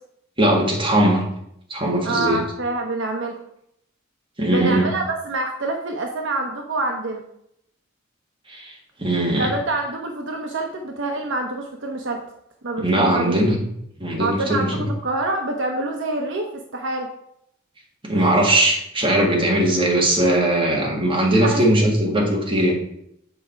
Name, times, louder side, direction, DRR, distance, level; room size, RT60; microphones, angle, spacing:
voice 1, 0.4-1.2 1.7-2.4 4.4-4.9 8.5-8.7 9.0-9.5 12.8-13.6 14.0-14.9 18.0-22.7, right 1 dB, 25° right, -2 dB, 1.9 m, -19 dB
voice 2, 2.0-3.4 4.5-7.2 9.4-12.2 12.6-13.3 14.2-17.1 18.1-18.3 21.4-21.6, right 2 dB, 65° right, 2 dB, 0.9 m, -26 dB
7.9 x 4.9 x 4.5 m, 0.75 s
head